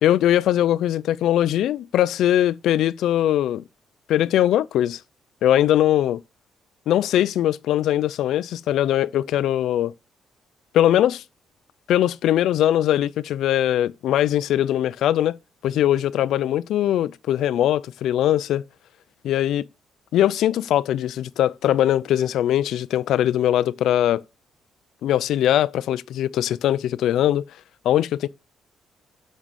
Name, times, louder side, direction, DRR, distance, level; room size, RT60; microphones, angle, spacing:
voice 1, 0.0-3.6 4.1-5.0 5.4-6.2 6.9-9.9 10.7-11.2 11.9-15.4 15.6-18.6 19.2-19.7 20.1-24.2 25.0-27.4 27.8-28.3, left 12 dB, 80° left, 0.4 m, -21 dB
6.1 x 5.4 x 6.8 m
cardioid pair, 145°, 0 cm